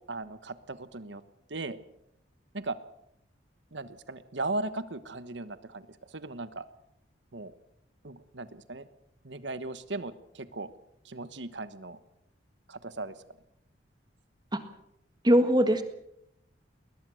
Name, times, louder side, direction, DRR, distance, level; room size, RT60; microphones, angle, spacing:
voice 1, 0.1-1.2 1.5-1.8 2.5-2.8 3.7-6.6 7.3-7.5 8.0-8.9 9.2-10.7 11.0-12.0 12.7-13.2, right 2 dB, 65° right, 13 dB, 1.3 m, -37 dB
voice 2, 15.2-15.8, equal, 20° right, 8 dB, 1.6 m, -21 dB
20.5 x 20.0 x 6.4 m, 0.77 s
head